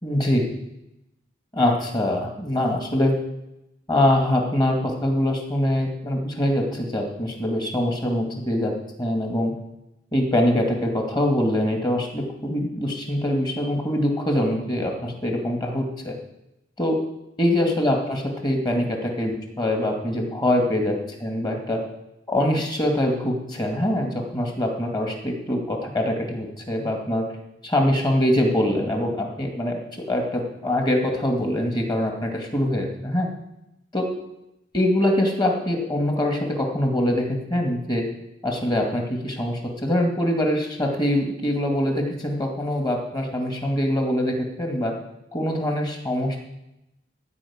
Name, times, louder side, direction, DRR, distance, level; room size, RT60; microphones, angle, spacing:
voice 1, 0.0-0.5 1.5-3.2 3.9-8.7 9.0-9.5 10.1-16.2 16.8-17.0 17.4-21.8 22.3-27.2 27.6-33.3 33.9-34.1 34.7-38.1 38.4-44.9 45.3-46.4, left 1 dB, 25° left, 2 dB, 2.2 m, -23 dB
13.5 x 5.3 x 8.8 m, 0.87 s
head